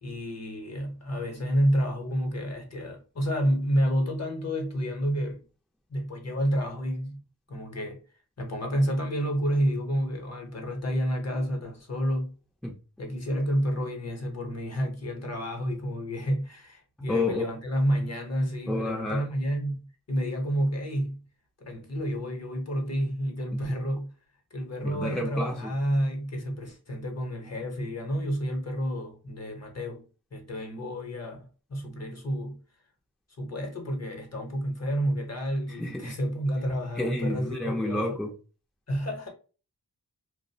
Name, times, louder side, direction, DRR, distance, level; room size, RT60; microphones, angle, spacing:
voice 1, 0.0-5.4 5.9-7.2 7.5-8.0 8.4-12.3 13.0-21.2 21.6-24.1 24.5-30.0 30.3-31.4 31.7-32.6 33.4-38.2 38.9-39.3, equal, 40° left, 0.8 m, -29 dB
voice 2, 17.1-17.5 18.7-19.2 24.8-25.7 35.7-36.2 37.0-38.3, left 2 dB, ahead, 0.5 m, -30 dB
2.5 x 2.0 x 2.7 m
wide cardioid pair, 65°, 39 cm